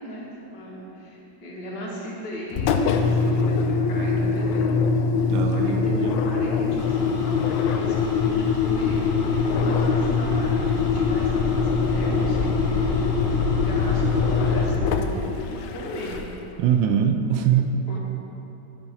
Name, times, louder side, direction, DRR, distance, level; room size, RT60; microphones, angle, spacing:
voice 1, 0.0-4.7 5.2-13.2 13.7-14.0 14.3-15.4 15.7-16.2 17.9-18.0, equal, 65° left, -4 dB, 2.0 m, -37 dB
Engine, 2.5-16.5, left 4 dB, 85° left, 1.3 m, -23 dB
voice 2, 5.3-6.2 16.6-17.9, right 8 dB, 90° right, 7 dB, 1.3 m, -22 dB
sound 1, 6.8-14.7, left 2 dB, 45° left, 0.7 m, -39 dB
9.6 x 5.8 x 4.2 m, 2.9 s
omnidirectional pair, 2.0 m